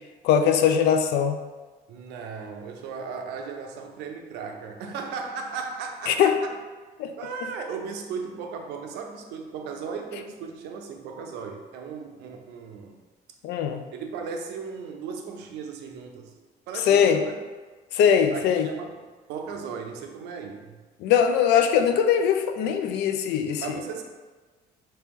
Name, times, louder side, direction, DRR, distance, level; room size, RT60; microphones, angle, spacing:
voice 1, 0.2-1.4 6.1-6.3 7.0-7.1 13.4-13.8 16.9-17.2 17.9-18.7 21.0-23.7, left 8 dB, 80° left, 7 dB, 0.4 m, -21 dB
voice 2, 1.9-6.5 7.2-13.0 13.9-16.3 16.7-17.4 18.3-20.8 23.6-24.0, right 5 dB, 85° right, 3 dB, 0.5 m, -36 dB
3.1 x 2.9 x 3.5 m, 1.3 s
cardioid pair, 110°, 17 cm